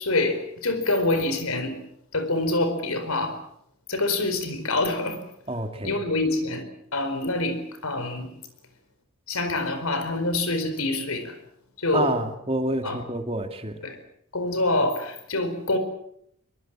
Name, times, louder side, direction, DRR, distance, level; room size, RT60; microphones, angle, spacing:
voice 1, 0.0-1.8 2.1-3.4 3.9-5.2 5.8-6.6 6.9-8.3 9.3-11.4 11.8-12.2 12.8-13.0 13.8-14.0 14.3-15.8, left 2 dB, 90° left, 9 dB, 4.6 m, -26 dB
voice 2, 5.5-5.9 11.9-13.8, right 1 dB, 25° right, 6 dB, 2.2 m, -28 dB
23.0 x 23.0 x 7.5 m, 0.72 s
head